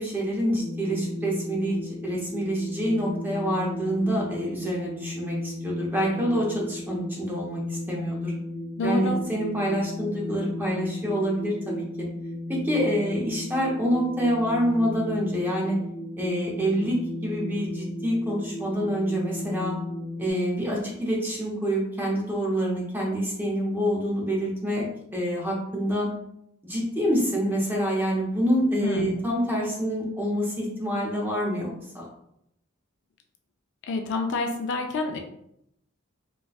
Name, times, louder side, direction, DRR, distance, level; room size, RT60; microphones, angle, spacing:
voice 1, 0.0-8.3 8.8-11.8 12.5-15.8 16.2-19.7 20.2-24.8 25.1-26.1 26.6-32.1, equal, 10° right, -3 dB, 0.7 m, -27 dB
sound 1, 0.6-20.3, left 1 dB, 45° right, 0.8 m, -35 dB
voice 2, 8.8-9.2 28.8-29.1 33.9-35.2, left 3 dB, 60° left, 4 dB, 0.3 m, -27 dB
4.0 x 2.2 x 2.3 m, 0.78 s
head